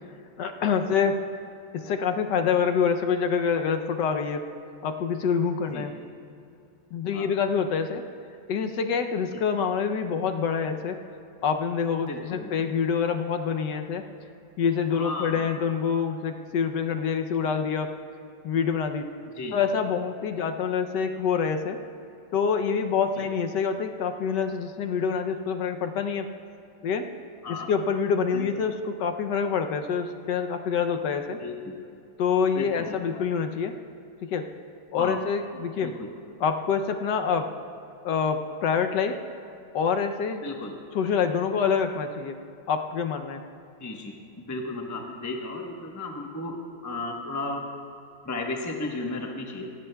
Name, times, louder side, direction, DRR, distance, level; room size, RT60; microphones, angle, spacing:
voice 1, 0.4-1.2 1.7-4.4 4.8-5.9 6.9-8.0 8.5-11.0 11.4-14.1 14.6-18.0 18.4-19.1 19.5-21.8 22.3-26.3 26.8-27.1 27.5-31.4 32.2-33.7 34.2-34.5 34.9-35.9 36.4-37.5 38.0-39.2 39.7-40.4 40.9-42.4 42.7-43.4, left 6 dB, 75° left, 6 dB, 1.2 m, -26 dB
voice 2, 12.1-12.7 14.9-15.5 19.4-19.6 23.2-23.3 27.4-27.7 28.3-28.5 31.4-31.7 32.5-33.0 35.0-35.2 35.8-36.1 40.4-40.7 43.8-46.6 46.8-47.6 48.2-49.7, left 2 dB, 15° left, 1 dB, 0.6 m, -34 dB
17.5 x 16.5 x 2.3 m, 2.7 s
omnidirectional pair, 2.0 m